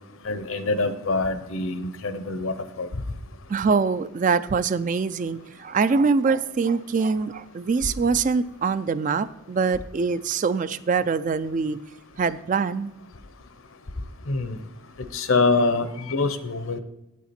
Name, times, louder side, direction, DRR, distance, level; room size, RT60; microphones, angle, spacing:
voice 1, 0.2-2.9 14.3-14.6 15.1-16.8, left 3 dB, 70° left, 0.8 m, -25 dB
voice 2, 3.5-11.8 12.2-12.9, right 5 dB, 35° right, 0.3 m, -24 dB
8.8 x 8.4 x 4.3 m
head